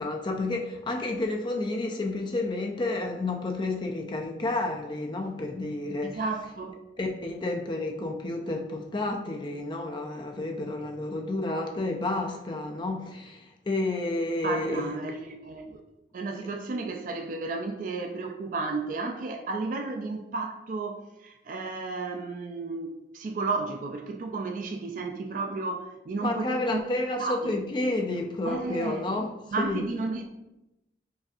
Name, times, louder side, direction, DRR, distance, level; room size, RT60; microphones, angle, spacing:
voice 1, 0.0-6.2 7.0-14.9 26.2-29.3 29.6-29.9, left 2 dB, 25° left, 2 dB, 0.4 m, -30 dB
voice 2, 6.0-6.8 14.4-15.8 16.1-26.8 27.2-27.5 28.4-29.0 29.5-30.2, right 3 dB, 45° right, 4 dB, 0.3 m, -33 dB
5.3 x 2.6 x 2.4 m, 0.93 s
head